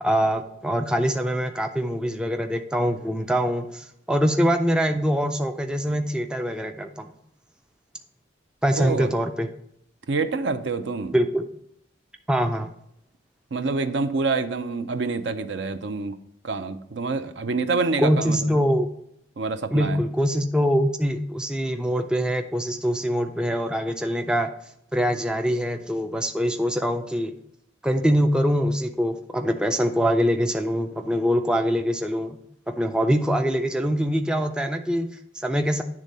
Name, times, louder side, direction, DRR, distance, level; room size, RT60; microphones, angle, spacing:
voice 1, 0.0-7.1 8.6-9.5 11.1-11.4 12.3-12.7 18.0-18.9 19.7-24.5 24.9-27.3 27.8-32.4 32.7-35.8, equal, 5° right, 5 dB, 0.4 m, -24 dB
voice 2, 8.7-9.1 10.1-11.1 13.5-16.2 16.4-18.5 19.4-20.0, right 4 dB, 60° right, 10 dB, 0.5 m, -27 dB
9.7 x 3.6 x 5.3 m, 0.74 s
head